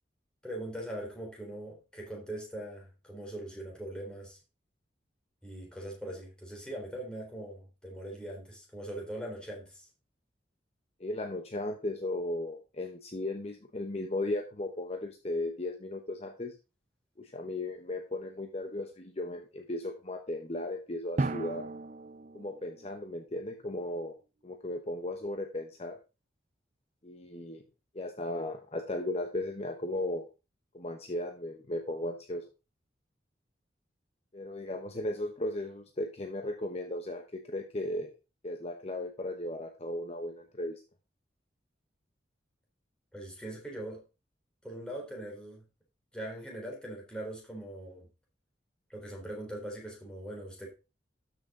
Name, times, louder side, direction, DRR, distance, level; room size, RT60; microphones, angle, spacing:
voice 1, 0.4-4.4 5.4-9.9 43.1-44.0 44.6-45.6 46.1-48.1 48.9-50.7, right 1 dB, 5° left, -2 dB, 3.9 m, -41 dB
voice 2, 11.0-16.6 17.2-21.7 22.3-24.2 24.4-26.0 27.0-27.6 27.9-30.3 30.7-32.4 34.3-38.1 38.4-40.8, left 1 dB, 35° left, 4 dB, 0.9 m, -36 dB
Drum, 21.2-23.5, right 2 dB, 40° right, 0.6 m, -36 dB
12.5 x 6.3 x 3.8 m, 0.29 s
head